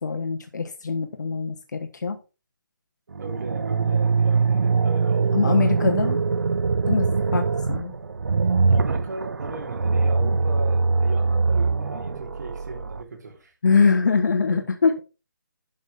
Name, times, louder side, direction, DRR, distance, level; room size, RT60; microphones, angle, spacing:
voice 1, 0.0-2.2 5.3-6.2 6.9-7.9 13.6-14.9, left 5 dB, 65° left, 1.2 m, -23 dB
sound 1, 3.1-13.0, right 4 dB, 75° right, 1.0 m, -22 dB
voice 2, 3.2-5.8 8.7-13.5 14.5-14.6, right 4 dB, 60° right, 3.9 m, -37 dB
11.5 x 5.7 x 3.6 m
hypercardioid pair, 170°, 11 cm